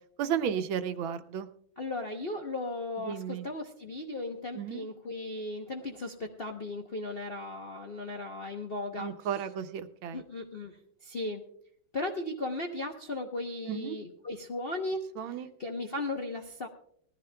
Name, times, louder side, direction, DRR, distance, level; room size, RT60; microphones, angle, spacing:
voice 1, 0.2-1.5 3.1-3.4 4.6-4.8 9.0-10.2 13.7-13.9 15.2-15.5, right 8 dB, 75° right, 9 dB, 1.5 m, -33 dB
voice 2, 1.8-9.4 10.1-11.4 11.9-15.0 15.3-16.7, left 2 dB, 50° left, 2 dB, 0.7 m, -36 dB
20.0 x 14.0 x 2.2 m, 0.65 s
omnidirectional pair, 2.3 m